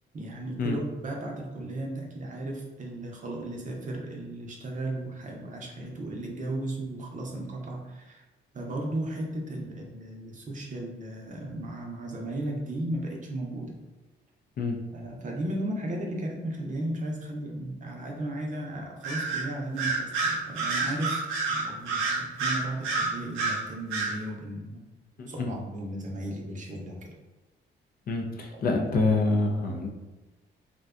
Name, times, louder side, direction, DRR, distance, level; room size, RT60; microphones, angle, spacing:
voice 1, 0.1-8.2 8.5-13.7 14.9-21.2 21.5-24.8 25.3-27.1 28.2-28.3 28.5-29.0, right 1 dB, 40° right, 0 dB, 0.6 m, -35 dB
Bird vocalization bird call bird song, 19.0-19.4 19.8-23.6 23.9-24.1, right 4 dB, 90° right, 0.5 m, -28 dB
voice 2, 25.2-25.5 28.1-29.9, left 3 dB, 50° left, 2 dB, 0.4 m, -26 dB
2.5 x 2.2 x 2.4 m, 1.1 s
cardioid pair, 90°, 20 cm